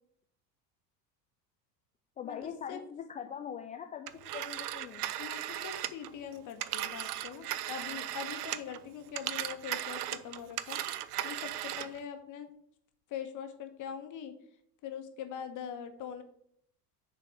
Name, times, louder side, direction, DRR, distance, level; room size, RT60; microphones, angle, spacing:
voice 1, 2.2-5.0, left 8 dB, 20° left, 5 dB, 0.3 m, -42 dB
Telephone, 4.1-8.8 9.1-12.0, right 13 dB, 65° right, 0.6 m, -37 dB
voice 2, 5.2-10.8 11.2-12.5 13.1-14.3 14.8-16.2, left 8 dB, 40° left, 7 dB, 1.2 m, -42 dB
6.8 x 4.1 x 6.3 m, 0.69 s
figure-of-eight pair, 70°, 49 cm